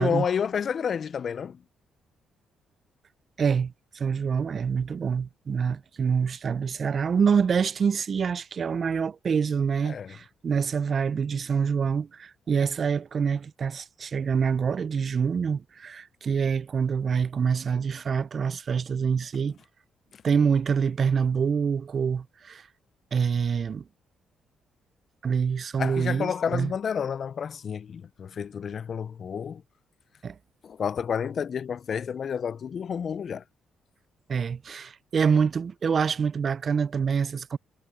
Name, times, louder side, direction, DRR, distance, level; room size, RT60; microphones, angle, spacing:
voice 1, 0.0-1.6 9.8-10.2 25.8-29.6 30.6-33.4, left 7 dB, 50° left, 0.4 m, -30 dB
voice 2, 3.4-19.6 20.2-22.7 23.1-23.8 25.2-26.7 30.2-30.4 34.3-37.6, right 6 dB, 45° right, 0.4 m, -26 dB
cardioid pair, 90°, 0 cm